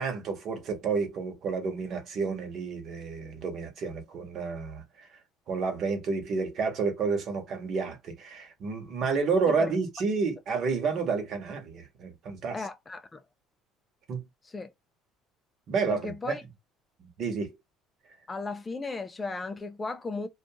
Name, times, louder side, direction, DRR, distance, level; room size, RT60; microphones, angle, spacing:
voice 1, 0.0-5.1 5.5-12.6 14.1-14.2 15.7-16.4 17.0-17.5, right 5 dB, 50° right, 1.0 m, -30 dB
voice 2, 12.5-13.2 14.4-14.7 15.9-16.4 18.3-20.3, left 3 dB, 20° left, 0.3 m, -35 dB
2.4 x 2.3 x 2.7 m
cardioid pair, 130°, 0 cm